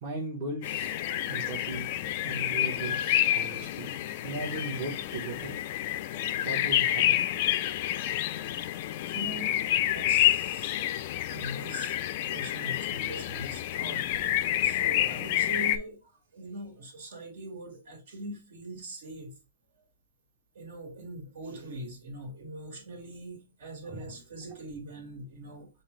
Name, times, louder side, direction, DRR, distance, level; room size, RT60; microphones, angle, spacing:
voice 1, 0.0-1.0 1.3-1.9 2.2-3.9 4.2-5.6 6.4-7.2, right 2 dB, 35° right, 1.0 m, -37 dB
sound 1, 0.6-15.8, left 13 dB, 40° left, 0.3 m, -29 dB
voice 2, 1.1-1.5 2.3-2.5 9.1-11.0 11.3-12.0 12.2-14.0 14.4-19.3 19.8-19.9 20.5-25.7, right 1 dB, 65° right, 1.9 m, -42 dB
5.5 x 2.7 x 3.1 m
hypercardioid pair, 170°, 0 cm